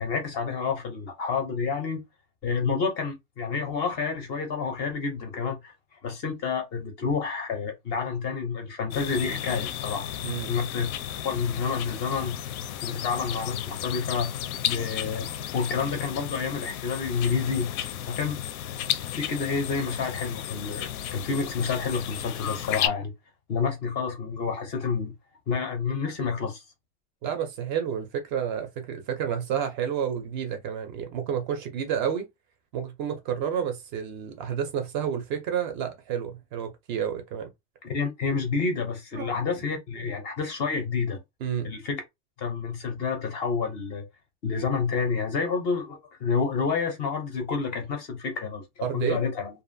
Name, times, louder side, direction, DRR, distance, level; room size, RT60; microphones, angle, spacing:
voice 1, 0.0-2.0 2.4-5.7 6.0-10.1 10.5-10.9 11.2-12.4 12.8-14.3 14.6-17.7 18.1-18.4 19.1-23.1 23.5-25.1 25.5-26.6 37.8-41.2 41.6-42.0 42.4-44.0 44.4-48.6 48.9-49.5, left 5 dB, 25° left, 0.4 m, -29 dB
sound 1, 8.9-22.9, left 10 dB, 80° left, 0.6 m, -33 dB
voice 2, 10.2-10.5 27.2-32.3 32.7-37.5 39.1-39.3 41.4-41.7 48.8-49.2, right 8 dB, 35° right, 0.4 m, -30 dB
2.5 x 2.4 x 2.5 m
supercardioid pair, 155°, 43 cm